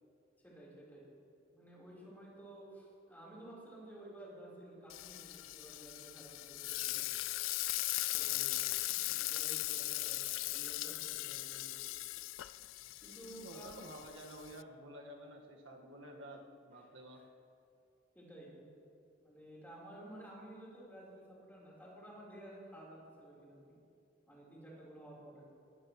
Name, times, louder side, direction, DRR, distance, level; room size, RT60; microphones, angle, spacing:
voice 1, 0.4-1.1 1.5-7.1 8.1-11.9 13.0-13.8 17.1-17.2 18.1-18.6 19.2-23.8 24.3-25.5, right 1 dB, 10° left, -6 dB, 4.1 m, -53 dB
Frying (food), 4.9-14.6, left 18 dB, 80° left, 0.3 m, -39 dB
voice 2, 13.3-17.2, right 1 dB, 70° right, 1 dB, 1.7 m, -51 dB
21.0 x 14.0 x 3.2 m, 2.5 s
head